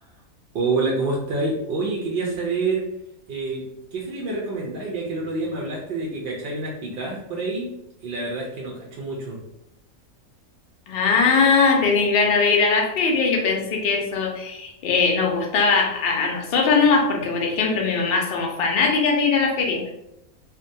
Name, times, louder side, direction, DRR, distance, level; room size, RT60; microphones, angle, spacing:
voice 1, 0.5-2.9 3.3-7.7 8.0-9.4, right 3 dB, 70° right, -2 dB, 0.5 m, -27 dB
voice 2, 10.9-19.9, left 4 dB, 70° left, 1 dB, 0.5 m, -20 dB
2.5 x 2.2 x 2.6 m, 0.85 s
omnidirectional pair, 1.5 m